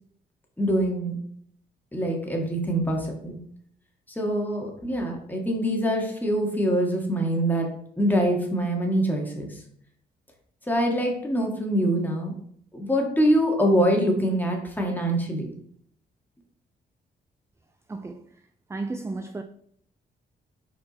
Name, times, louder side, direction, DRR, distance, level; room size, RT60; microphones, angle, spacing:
voice 1, 0.6-1.2 1.9-3.4 4.1-7.7 8.0-9.5 10.7-12.3 12.7-15.5, equal, 10° left, 1.8 m, -24 dB
voice 2, 17.9-18.2 18.7-19.4, right 3 dB, 15° right, 0.4 m, -33 dB
5.1 x 4.6 x 4.2 m
cardioid pair, 85°, 18 cm